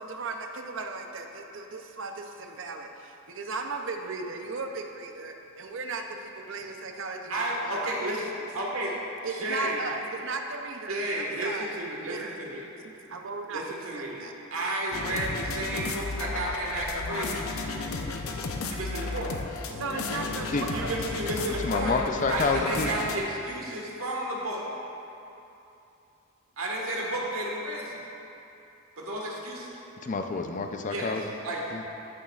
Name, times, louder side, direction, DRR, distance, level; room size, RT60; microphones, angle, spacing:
voice 1, 0.0-8.0 9.2-12.4 12.8-13.6 13.9-14.3 19.7-21.0, right 3 dB, 60° right, 4 dB, 0.6 m, -36 dB
voice 2, 7.3-8.2 8.5-8.9 9.3-9.8 10.9-12.6 13.5-14.2 14.5-17.5 18.7-19.3 20.7-22.0 22.3-24.7 26.6-28.0 29.0-29.7 30.9-31.6, right 1 dB, 75° right, -3 dB, 1.5 m, -32 dB
sound 1, 14.9-23.2, left 3 dB, 80° left, 0.6 m, -33 dB
voice 3, 21.6-22.9 30.0-31.2 31.7-31.8, left 4 dB, 35° left, 5 dB, 0.4 m, -28 dB
13.0 x 7.3 x 2.4 m, 2.9 s
head